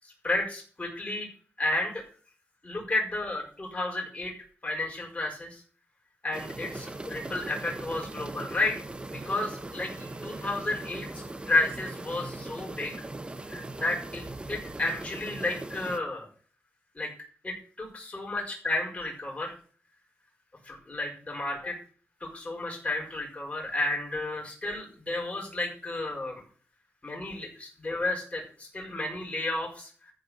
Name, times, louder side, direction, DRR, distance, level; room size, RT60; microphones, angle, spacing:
voice 1, 0.2-1.3 1.6-2.0 2.6-4.3 4.6-5.6 6.2-8.8 9.1-11.1 11.4-13.0 13.5-14.2 14.5-16.3 16.9-17.1 17.4-19.5 20.6-21.8 22.2-26.4 27.0-30.1, left 2 dB, 30° left, -1 dB, 5.9 m, -32 dB
sound 1, 6.3-16.0, right 2 dB, 20° right, 1.0 m, -40 dB
14.0 x 5.0 x 6.6 m, 0.42 s
wide cardioid pair, 95°, 5 cm